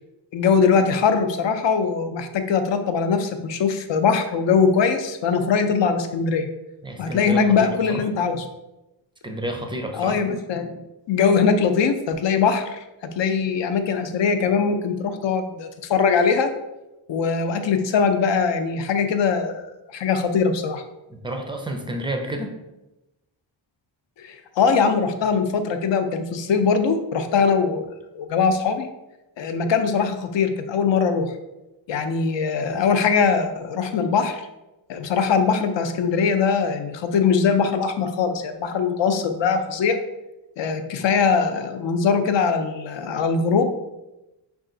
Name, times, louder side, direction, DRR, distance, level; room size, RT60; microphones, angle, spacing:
voice 1, 0.3-6.5 7.0-8.4 9.9-10.8 11.1-12.8 13.2-16.5 17.1-19.7 19.9-20.8 24.2-27.9 28.1-28.9 29.4-31.3 31.9-34.4 34.9-40.0 40.6-43.7, left 5 dB, 65° left, 7 dB, 0.6 m, -21 dB
voice 2, 6.8-8.0 9.2-10.2 21.1-22.5, right 1 dB, 10° right, 3 dB, 0.4 m, -30 dB
5.5 x 2.4 x 3.7 m, 0.97 s
wide cardioid pair, 140°, 48 cm